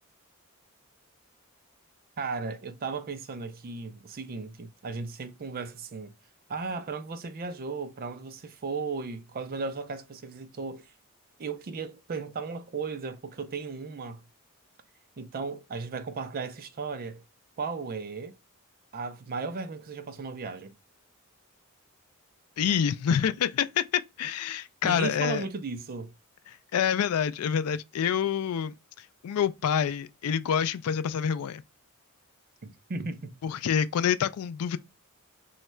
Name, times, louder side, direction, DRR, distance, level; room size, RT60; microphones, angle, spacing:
voice 1, 2.2-6.1 6.5-10.9 11.4-14.2 15.2-17.2 17.6-18.4 18.9-20.7 24.8-26.1 32.6-33.4, right 4 dB, 40° right, 0.4 m, -36 dB
voice 2, 22.6-25.4 26.7-31.6 33.4-34.8, left 8 dB, 75° left, 0.3 m, -27 dB
3.0 x 2.3 x 4.3 m
head